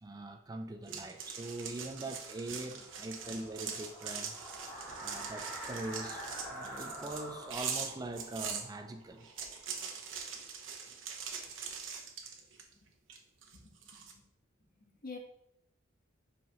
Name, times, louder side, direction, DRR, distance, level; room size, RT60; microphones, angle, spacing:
voice 1, 0.0-4.3 5.0-9.3, right 2 dB, 20° right, 6 dB, 0.4 m, -42 dB
sound 1, 0.9-8.6 9.2-12.7 13.1-14.1, right 6 dB, 70° right, 1.0 m, -42 dB
sound 2, 1.3-10.0, right 1 dB, ahead, 2.5 m, -47 dB
voice 2, 13.5-14.2 14.8-15.2, left 4 dB, 45° left, 3 dB, 1.2 m, -49 dB
7.5 x 5.7 x 3.0 m, 0.78 s
head